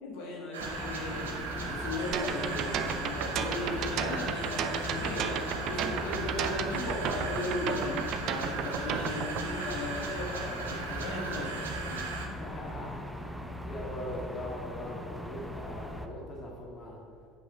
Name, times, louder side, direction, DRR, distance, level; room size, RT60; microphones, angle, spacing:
voice 1, 0.0-1.3 1.7-12.0, left 2 dB, 60° left, -3 dB, 2.0 m, -37 dB
sound 1, 0.5-12.3, right 4 dB, 75° right, 1.0 m, -38 dB
sound 2, 0.6-16.1, equal, ahead, 0.7 m, -40 dB
sound 3, 2.1-9.4, right 8 dB, 50° right, 0.5 m, -33 dB
voice 2, 12.3-17.0, left 1 dB, 35° left, -3 dB, 1.9 m, -41 dB
7.9 x 6.2 x 5.0 m, 2.2 s
figure-of-eight pair, 70°, 0 cm